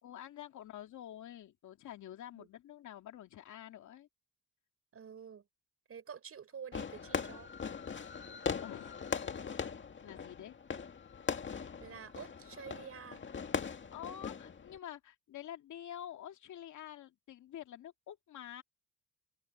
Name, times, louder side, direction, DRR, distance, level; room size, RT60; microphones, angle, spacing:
voice 1, 0.0-4.1 7.9-8.0 8.6-9.6 10.0-10.6 13.9-18.6, left 11 dB, 75° left, 2.5 m, -48 dB
voice 2, 4.9-5.4 5.9-7.5 11.5-13.2, right 7 dB, 50° right, 5.4 m, -49 dB
Fireworks, 6.7-14.8, left 6 dB, 40° left, 2.1 m, -40 dB
cardioid pair, 90°, 30 cm